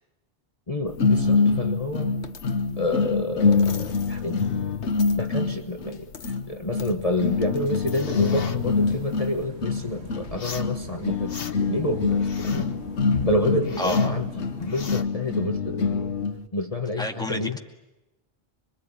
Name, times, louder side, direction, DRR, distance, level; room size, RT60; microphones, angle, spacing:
voice 1, 0.7-2.1 2.8-4.4 5.2-12.7 13.2-16.1 16.5-17.6, left 2 dB, 35° left, 4 dB, 1.4 m, -29 dB
sound 1, 1.0-16.4, left 4 dB, 80° left, 1.4 m, -25 dB
sound 2, 7.9-8.6 10.3-10.7 11.1-11.8 12.1-12.8 13.2-14.2 14.6-15.0, left 5 dB, 60° left, 1.4 m, -36 dB
sound 3, 8.3-15.1, right 2 dB, 70° right, 2.3 m, -46 dB
voice 2, 13.8-14.1 17.0-17.6, left 1 dB, 5° left, 2 dB, 2.3 m, -29 dB
25.5 x 22.5 x 9.9 m, 1.0 s
omnidirectional pair, 1.1 m